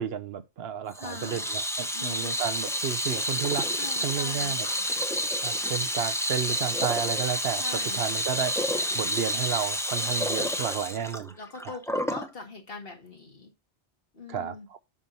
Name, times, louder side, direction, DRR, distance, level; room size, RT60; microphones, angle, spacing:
voice 1, 0.0-3.7 4.0-4.7 5.4-8.6 8.9-11.3 14.3-14.8, right 8 dB, 70° right, 0.9 m, -32 dB
voice 2, 0.9-1.5 1.9-2.4 3.7-4.9 7.5-8.0 10.6-10.8 11.4-13.5 14.1-14.7, left 3 dB, 55° left, 2.2 m, -42 dB
Water tap faucet / Sink (filling or washing), 0.9-12.3, equal, 5° left, 0.5 m, -29 dB
7.4 x 5.9 x 4.0 m
omnidirectional pair, 1.1 m